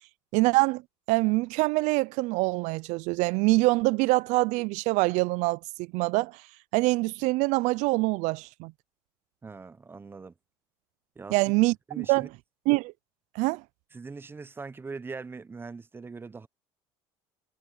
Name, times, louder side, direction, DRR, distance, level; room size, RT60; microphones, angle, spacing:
voice 1, 0.3-0.8 1.1-6.4 6.7-8.7 11.3-12.3 12.7-12.9 13.4-13.6, right 23 dB, 75° right, 0.4 m, -25 dB
voice 2, 9.4-10.3 11.2-11.4 11.9-12.3 13.9-16.5, right 4 dB, 15° right, 0.8 m, -41 dB
cardioid pair, 110°, 12 cm